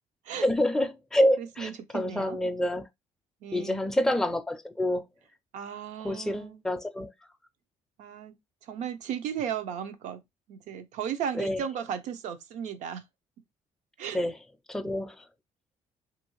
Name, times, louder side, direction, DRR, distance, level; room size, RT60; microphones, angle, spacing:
voice 1, 0.4-2.9 3.5-5.1 6.0-7.1 11.4-11.6 14.1-14.3 14.7-15.2, left 1 dB, 5° left, 0.4 m, -27 dB
voice 2, 1.4-2.4 3.4-3.9 5.5-6.6 8.0-8.3 8.6-10.2 10.5-13.0 14.0-14.2, right 8 dB, 80° right, 0.6 m, -35 dB
2.7 x 2.5 x 3.0 m
cardioid pair, 120°, 12 cm